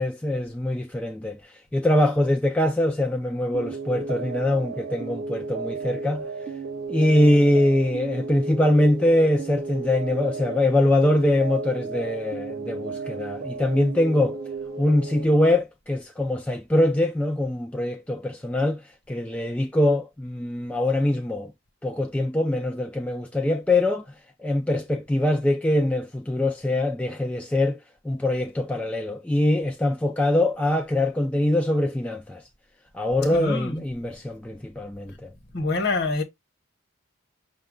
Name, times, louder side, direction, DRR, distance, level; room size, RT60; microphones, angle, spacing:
voice 1, 0.0-6.2 6.9-14.4 14.8-18.8 19.1-21.5 21.8-24.0 24.4-27.8 28.0-32.4 32.9-35.3, left 1 dB, 5° left, 0.3 m, -23 dB
sound 1, 3.5-15.2, right 4 dB, 45° right, 0.7 m, -33 dB
voice 2, 33.2-33.8 35.5-36.2, left 3 dB, 50° left, 1.1 m, -26 dB
5.7 x 2.3 x 3.7 m
head